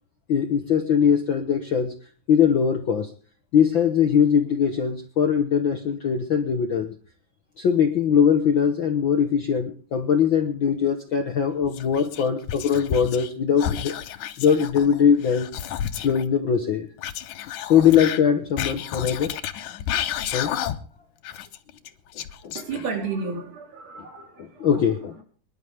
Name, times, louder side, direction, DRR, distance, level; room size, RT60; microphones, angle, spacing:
voice 1, 0.3-1.9 2.3-3.1 3.5-6.9 7.6-13.9 14.4-15.5 16.0-16.9 17.7-19.3 20.3-20.5 22.4-22.5 24.6-25.2, left 7 dB, 60° left, 1.3 m, -21 dB
Whispering, 11.7-13.3 13.6-16.2 17.0-21.0 21.2-23.1, left 10 dB, 75° left, 2.4 m, -31 dB
voice 2, 22.6-25.2, right 4 dB, 70° right, 5.2 m, -33 dB
25.0 x 11.5 x 3.5 m
omnidirectional pair, 3.6 m